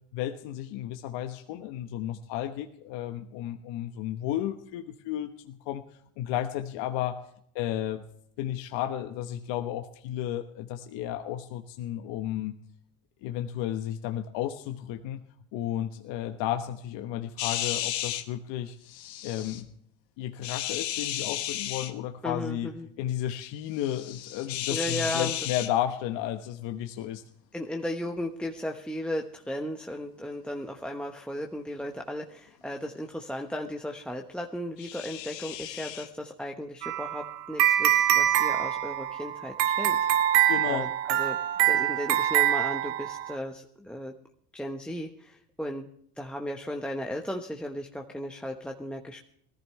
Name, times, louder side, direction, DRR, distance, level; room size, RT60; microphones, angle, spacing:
voice 1, 0.1-5.8 6.2-7.2 7.5-8.0 8.4-12.5 13.2-15.2 15.5-18.8 19.2-19.7 20.2-22.7 23.0-27.2 40.5-40.9, left 12 dB, 65° left, 6 dB, 1.3 m, -33 dB
sound 1, 17.4-18.2 18.9-19.6 20.4-21.9 23.8-25.7 34.8-36.1, left 13 dB, 85° left, 1.4 m, -34 dB
voice 2, 22.2-22.9 24.7-25.4 27.5-40.0 40.6-41.4 41.6-44.1 44.5-45.9 46.2-49.2, equal, ahead, 2 dB, 1.2 m, -35 dB
sound 2, 36.8-43.3, right 12 dB, 80° right, 1.5 m, -25 dB
20.0 x 14.5 x 3.3 m, 0.67 s
hypercardioid pair, 80°, 48 cm